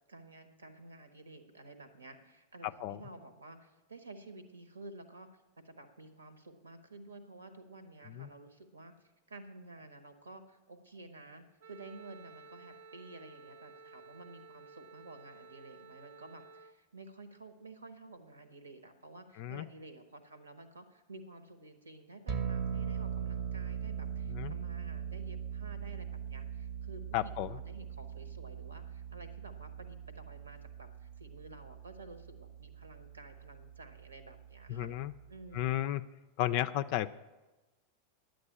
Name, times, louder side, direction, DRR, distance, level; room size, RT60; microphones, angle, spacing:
voice 1, 0.1-5.3 5.6-8.9 9.3-34.9 35.3-35.9, right 2 dB, 75° right, 10 dB, 1.2 m, -52 dB
voice 2, 2.6-3.0 8.1-8.3 19.4-19.7 24.3-24.5 27.1-27.6 34.7-35.1 35.5-36.0 36.4-37.1, left 13 dB, 45° left, 12 dB, 0.3 m, -33 dB
Wind instrument woodwind instrument, 11.6-16.8, right 4 dB, 60° right, 0.5 m, -54 dB
sound 1, 22.3-35.7, right 8 dB, 40° right, 0.9 m, -41 dB
10.5 x 7.8 x 8.6 m, 1.1 s
figure-of-eight pair, 90°, 0 cm